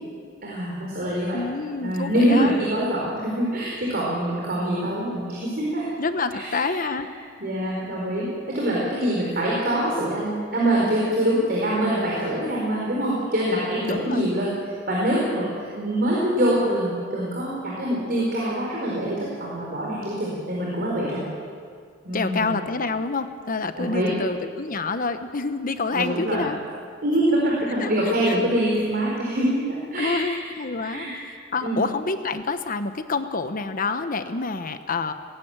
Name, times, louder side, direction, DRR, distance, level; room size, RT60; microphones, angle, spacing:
voice 1, 0.4-1.4 1.8-5.9 6.3-6.8 7.4-14.5 14.9-21.3 22.0-22.6 23.8-24.1 25.9-26.4 27.0-30.4 30.8-31.2 31.6-31.8, right 1 dB, 55° right, -4 dB, 4.5 m, -24 dB
voice 2, 1.3-2.6 6.0-7.1 13.8-14.3 22.1-26.6 27.7-28.4 30.0-35.1, left 3 dB, 45° left, 9 dB, 1.1 m, -28 dB
19.5 x 15.5 x 9.0 m, 2.2 s
head